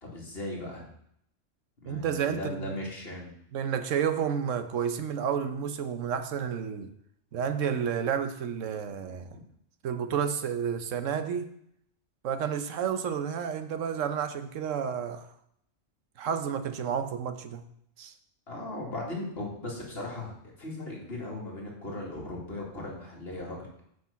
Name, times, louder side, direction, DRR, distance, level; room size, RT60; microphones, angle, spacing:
voice 1, 0.0-0.9 1.8-3.3 9.3-9.4 18.5-20.3 20.6-23.7, left 2 dB, 50° left, -2 dB, 2.4 m, -37 dB
voice 2, 1.9-2.7 3.5-6.9 7.3-9.2 9.8-11.5 12.2-15.3 16.2-17.7 18.0-18.1, right 7 dB, 90° right, 9 dB, 1.2 m, -30 dB
7.6 x 5.3 x 7.0 m, 0.72 s
omnidirectional pair, 1.3 m